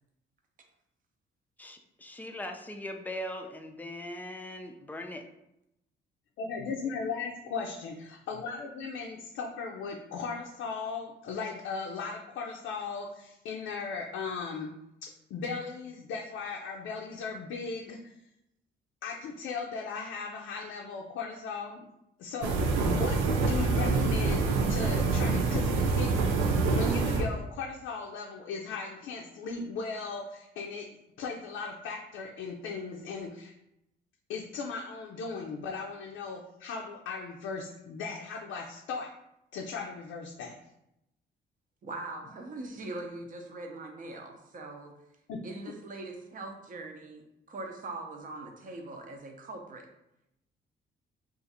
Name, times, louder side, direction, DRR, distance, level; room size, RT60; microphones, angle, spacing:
voice 1, 1.6-5.3, left 1 dB, 10° left, 5 dB, 0.4 m, -40 dB
voice 2, 6.4-14.7 15.0-18.1 19.0-21.8 22.2-24.4 24.7-26.1 26.4-30.9 31.2-33.5 34.3-39.1 39.5-40.6 45.3-45.4, left 4 dB, 85° left, 0 dB, 0.4 m, -37 dB
sound 1, 22.4-27.4, right 3 dB, 90° right, 0.5 m, -26 dB
voice 3, 41.8-45.0 45.4-49.9, right 2 dB, 40° right, 3 dB, 0.6 m, -41 dB
2.5 x 2.5 x 4.1 m, 0.85 s
cardioid pair, 90°, 20 cm